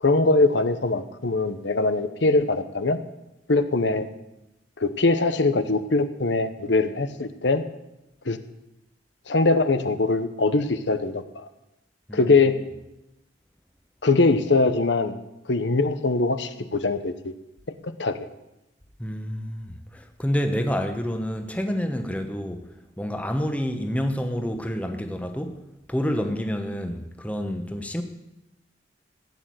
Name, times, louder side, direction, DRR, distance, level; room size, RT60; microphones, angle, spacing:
voice 1, 0.0-3.0 3.5-4.1 4.8-7.6 8.3-8.4 9.3-11.5 12.1-12.6 14.0-15.2 15.5-17.3 17.8-18.2, left 3 dB, 80° left, 1.0 m, -22 dB
voice 2, 19.0-22.6 23.0-25.6 25.9-28.0, equal, 10° left, 1.1 m, -28 dB
15.5 x 9.0 x 7.8 m
head